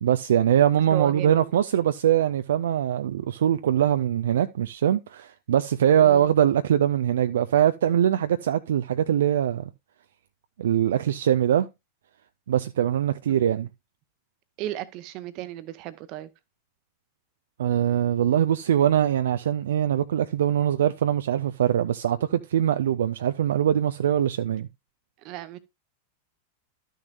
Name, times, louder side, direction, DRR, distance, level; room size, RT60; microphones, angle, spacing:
voice 1, 0.0-9.6 10.6-11.7 12.5-13.7 17.6-24.7, right 10 dB, 60° right, 0.4 m, -22 dB
voice 2, 0.7-1.5 6.0-6.3 13.3-13.5 14.6-16.3 25.2-25.6, right 14 dB, 40° right, 0.9 m, -35 dB
12.5 x 6.5 x 2.5 m
figure-of-eight pair, 90°, 0 cm